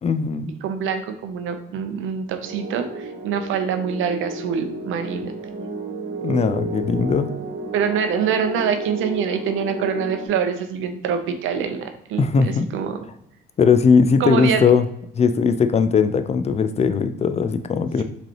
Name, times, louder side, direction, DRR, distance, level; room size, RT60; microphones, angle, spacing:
voice 1, 0.0-0.5 6.2-7.3 12.2-12.7 13.6-14.9 15.1-18.0, left 5 dB, 35° left, 10 dB, 0.4 m, -19 dB
voice 2, 0.6-5.7 7.7-13.0 14.2-14.7, right 7 dB, 85° right, 8 dB, 0.6 m, -25 dB
sound 1, 2.4-10.3, right 2 dB, 65° right, 1.0 m, -32 dB
5.0 x 3.2 x 2.8 m, 0.73 s
cardioid pair, 90°, 20 cm